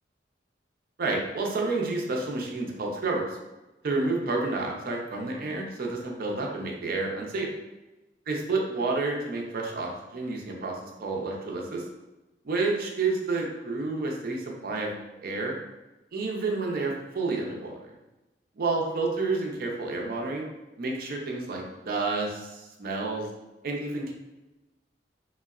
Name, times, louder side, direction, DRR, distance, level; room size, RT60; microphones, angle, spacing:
voice 1, 1.0-3.2 3.8-7.5 8.3-11.8 12.4-14.9 15.2-15.5 16.1-17.9 18.6-20.4 20.8-23.3 23.6-24.1, right 3 dB, 55° right, 0 dB, 0.5 m, -30 dB
3.4 x 2.0 x 2.3 m, 1.0 s
head